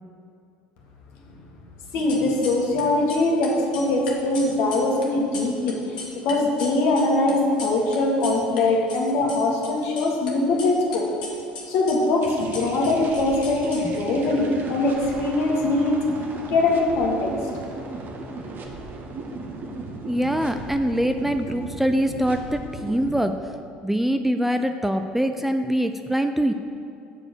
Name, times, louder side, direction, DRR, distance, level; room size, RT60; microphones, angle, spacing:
sound 1, 1.9-2.8 3.1-8.6 8.9-10.3 10.6-14.3, left 4 dB, 80° left, 1.2 m, -38 dB
voice 1, 1.9-5.8 6.1-11.1 11.7-16.0 16.5-17.3, left 2 dB, 60° left, -1 dB, 1.6 m, -22 dB
sound 2, 12.2-23.3, right 2 dB, 45° right, 1.1 m, -36 dB
voice 2, 20.1-23.4 23.8-26.5, equal, 5° right, 7 dB, 0.4 m, -23 dB
7.3 x 4.7 x 6.3 m, 2.5 s
hypercardioid pair, 70°, 4 cm